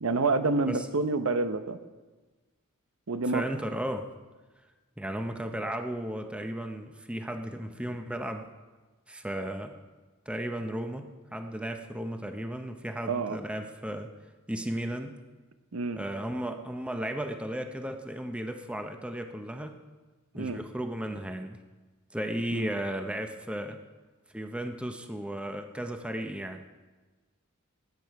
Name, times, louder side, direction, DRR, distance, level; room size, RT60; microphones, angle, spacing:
voice 1, 0.0-1.8 3.1-3.4 13.1-13.4 15.7-16.0 20.4-20.6 22.5-22.7, right 3 dB, 75° right, 10 dB, 0.8 m, -28 dB
voice 2, 3.3-4.1 5.0-8.5 9.1-9.7 10.3-14.1 14.5-15.1 16.0-19.8 20.3-21.6 22.1-23.8 24.3-26.6, right 1 dB, 5° right, 6 dB, 0.7 m, -35 dB
18.5 x 8.9 x 4.7 m, 1.3 s
head